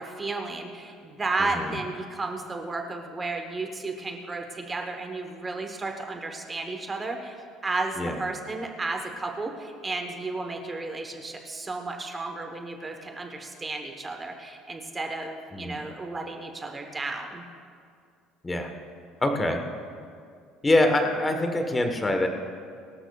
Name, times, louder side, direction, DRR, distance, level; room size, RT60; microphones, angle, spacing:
voice 1, 0.0-7.4 7.6-17.4, right 3 dB, 15° right, 3 dB, 1.0 m, -33 dB
voice 2, 1.4-1.8 8.0-8.2 15.5-15.8 18.4-18.7 19.2-19.6 20.6-22.3, left 1 dB, 10° left, 5 dB, 1.0 m, -24 dB
23.0 x 13.0 x 2.3 m, 2.3 s
cardioid pair, 170°, 0 cm